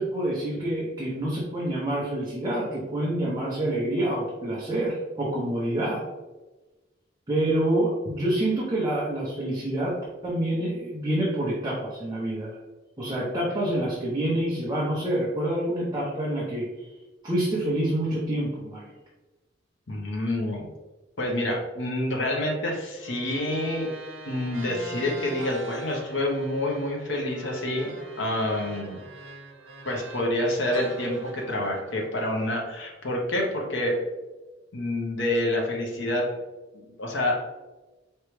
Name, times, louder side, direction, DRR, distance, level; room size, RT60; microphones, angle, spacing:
voice 1, 0.0-6.0 7.3-10.0 10.2-12.6 13.0-16.9 17.2-18.9, right 1 dB, 20° right, -6 dB, 0.9 m, -27 dB
voice 2, 19.9-20.7 21.2-23.9 24.2-27.9 28.2-29.0 29.8-34.0 34.7-36.2 37.0-37.3, left 1 dB, 65° left, -1 dB, 1.0 m, -27 dB
sound 1, 23.0-30.4 30.7-33.1, right 2 dB, 80° right, 0.7 m, -43 dB
4.6 x 3.3 x 3.2 m, 1.1 s
head